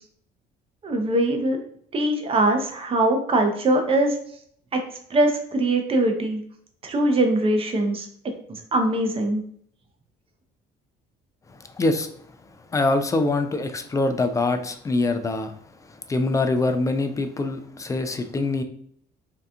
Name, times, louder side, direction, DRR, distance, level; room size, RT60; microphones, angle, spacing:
voice 1, 0.8-1.6 1.9-4.2 4.7-4.8 5.1-6.4 6.8-8.1 8.5-9.4, right 1 dB, 35° right, 4 dB, 0.6 m, -22 dB
voice 2, 11.8-12.1 12.7-15.5 16.1-18.6, left 2 dB, 20° left, 8 dB, 0.3 m, -24 dB
2.8 x 2.3 x 3.4 m, 0.63 s
cardioid pair, 110°, 17 cm